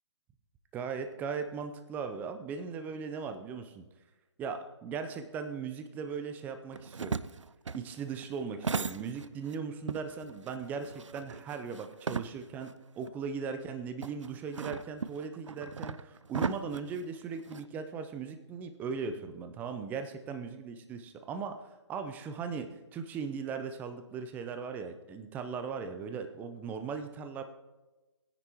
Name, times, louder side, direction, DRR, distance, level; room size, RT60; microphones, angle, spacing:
voice 1, 0.7-3.8 4.4-7.2 7.7-12.7 13.0-27.4, right 5 dB, 10° right, 8 dB, 0.6 m, -38 dB
sound 1, 6.7-9.6 9.9-12.7 13.1-13.2 14.0-17.7, right 5 dB, 85° right, 0.5 m, -37 dB
18.5 x 9.9 x 3.0 m, 1.1 s
figure-of-eight pair, 145°, 15 cm